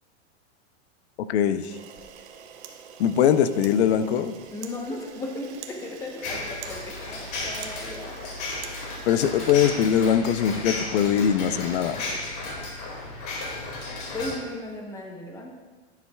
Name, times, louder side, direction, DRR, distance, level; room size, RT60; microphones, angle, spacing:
voice 1, 1.3-1.7 3.0-4.4 9.1-12.0, left 8 dB, 65° left, 12 dB, 0.6 m, -21 dB
Camera, 1.6-10.3, right 7 dB, 75° right, 1.1 m, -45 dB
voice 2, 4.5-8.4 14.1-15.5, left 2 dB, 10° left, 2 dB, 0.8 m, -36 dB
sound 1, 6.2-14.4, left 2 dB, 40° left, 2.2 m, -34 dB
11.0 x 10.5 x 2.3 m, 1.4 s
supercardioid pair, 160°, 34 cm